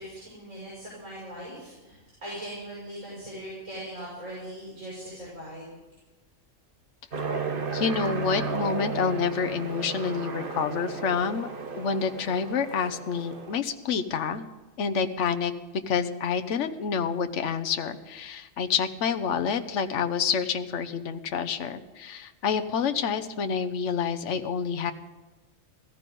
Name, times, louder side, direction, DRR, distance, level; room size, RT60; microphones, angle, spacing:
voice 1, 0.0-5.8, equal, 80° right, -6 dB, 6.5 m, -40 dB
Aircraft, 7.1-13.6, right 5 dB, 45° right, 1.3 m, -34 dB
voice 2, 7.7-11.5 11.7-14.5 14.8-24.9, left 6 dB, 70° left, 9 dB, 1.2 m, -28 dB
17.5 x 14.0 x 5.3 m, 1.1 s
omnidirectional pair, 1.3 m